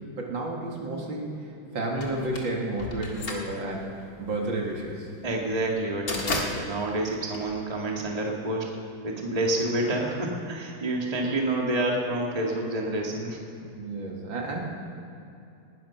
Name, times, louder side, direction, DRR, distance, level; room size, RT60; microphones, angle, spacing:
voice 1, 0.0-5.1 13.7-14.6, right 2 dB, 60° right, -1 dB, 2.9 m, -32 dB
sound 1, 2.0-8.1, left 2 dB, 45° left, 2.3 m, -35 dB
voice 2, 5.2-8.8 9.0-13.4, right 1 dB, 20° right, -1 dB, 2.0 m, -28 dB
19.5 x 12.5 x 5.8 m, 2.7 s
omnidirectional pair, 2.4 m